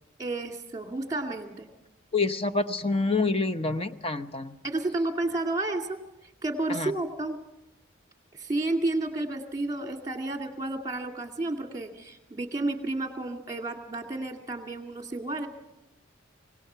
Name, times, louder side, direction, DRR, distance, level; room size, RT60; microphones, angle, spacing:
voice 1, 0.2-1.7 4.6-6.0 6.4-7.4 8.3-15.5, right 2 dB, 20° right, 4 dB, 2.2 m, -31 dB
voice 2, 2.1-4.6 6.7-6.9, left 3 dB, 25° left, 10 dB, 0.8 m, -27 dB
25.5 x 18.5 x 5.7 m, 0.94 s
head